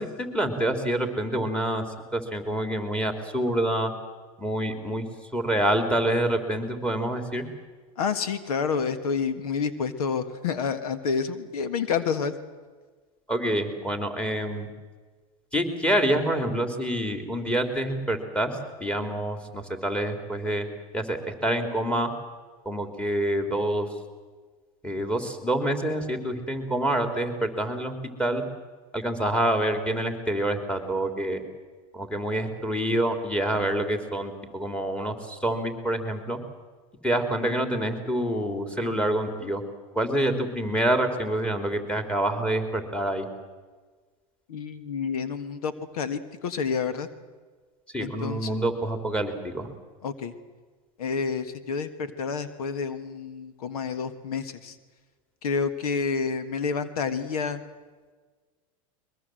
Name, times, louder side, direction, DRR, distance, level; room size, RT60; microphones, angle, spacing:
voice 1, 0.0-1.8 2.1-3.9 4.4-5.0 5.3-7.5 13.3-14.7 15.5-20.7 20.9-22.1 22.6-23.9 24.8-27.9 28.2-28.4 28.9-31.4 31.9-36.4 37.0-39.6 39.9-43.3 47.9-49.7, right 1 dB, 5° left, 6 dB, 3.3 m, -27 dB
voice 2, 8.0-12.3 44.5-47.1 48.0-48.5 50.0-50.3 51.0-54.8 55.4-57.6, left 5 dB, 90° left, 11 dB, 1.7 m, -29 dB
22.5 x 22.0 x 7.8 m, 1.4 s
supercardioid pair, 115°, 19 cm